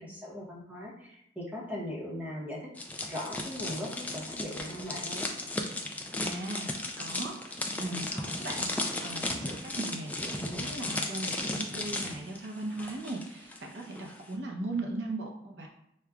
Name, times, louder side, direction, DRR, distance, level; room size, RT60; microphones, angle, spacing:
voice 1, 0.0-2.6 3.0-5.3, left 1 dB, 10° right, -4 dB, 0.9 m, -39 dB
sound 1, 2.8-13.6 13.8-14.1, left 2 dB, 10° left, 0.3 m, -35 dB
voice 2, 5.6-8.7 9.0-15.7, right 2 dB, 80° right, 0 dB, 0.6 m, -38 dB
6.4 x 2.2 x 2.3 m, 0.80 s
head